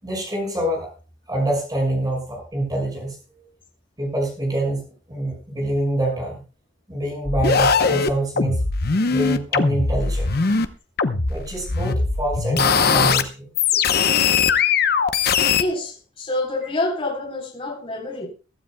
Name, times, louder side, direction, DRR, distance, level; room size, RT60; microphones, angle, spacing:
voice 1, 0.0-0.9 1.3-3.2 4.0-4.8 5.1-6.4 6.9-8.6 9.1-10.3 11.3-13.5, right 1 dB, 20° right, 1 dB, 6.1 m, -25 dB
sound 1, 7.2-10.7 11.0-13.2 13.5-15.6, left 5 dB, 55° left, 0.9 m, -20 dB
voice 2, 15.6-18.3, left 2 dB, 30° left, 0 dB, 4.1 m, -27 dB
23.0 x 12.5 x 2.3 m, 0.33 s
head